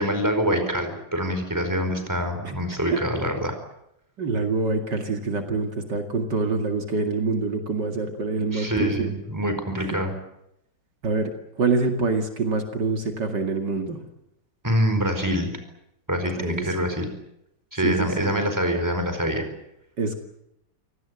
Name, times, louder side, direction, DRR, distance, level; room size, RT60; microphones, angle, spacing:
voice 1, 0.0-3.5 8.5-10.1 14.6-15.5 16.1-17.1 17.7-19.5, equal, 10° right, 7 dB, 4.7 m, -25 dB
voice 2, 2.9-3.2 4.2-9.2 9.8-9.9 11.0-14.0 16.4-16.7 17.8-18.3 20.0-20.2, right 3 dB, 65° right, 4 dB, 2.8 m, -26 dB
26.0 x 18.5 x 9.2 m, 0.82 s
omnidirectional pair, 2.0 m